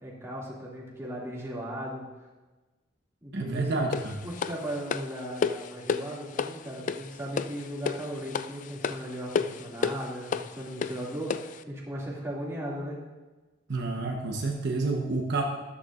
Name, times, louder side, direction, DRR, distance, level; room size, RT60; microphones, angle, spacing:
voice 1, 0.0-2.0 3.2-3.8 4.2-13.0, right 1 dB, 15° right, -4 dB, 2.3 m, -37 dB
voice 2, 3.3-4.2 13.7-15.4, right 3 dB, 60° right, 1 dB, 1.0 m, -29 dB
sound 1, 3.9-11.6, left 5 dB, 40° left, 0.3 m, -32 dB
13.0 x 11.0 x 2.5 m, 1.2 s
head